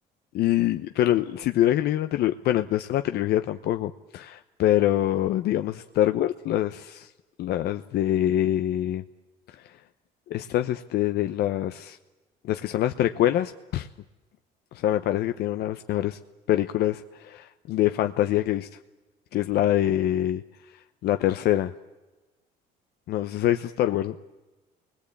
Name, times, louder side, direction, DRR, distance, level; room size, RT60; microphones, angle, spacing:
voice 1, 0.3-7.1 7.4-9.0 9.5-9.7 10.3-12.0 12.4-13.9 14.7-16.2 16.5-18.7 19.3-20.4 21.0-21.7 23.1-24.2, left 13 dB, 70° left, 8 dB, 0.9 m, -25 dB
27.5 x 20.5 x 8.6 m, 1.1 s
cardioid pair, 110°, 17 cm